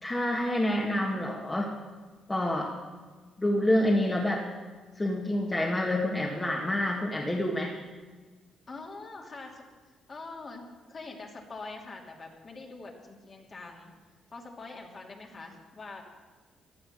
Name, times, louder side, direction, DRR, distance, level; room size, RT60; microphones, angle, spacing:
voice 1, 0.0-1.7 2.3-2.7 3.4-4.5 5.0-7.7, left 1 dB, 20° left, -2 dB, 1.9 m, -27 dB
voice 2, 8.7-9.6 10.1-13.9 14.3-16.0, left 3 dB, 40° left, 0 dB, 2.9 m, -44 dB
15.5 x 11.0 x 6.6 m, 1.4 s
cardioid pair, 90°, 0 cm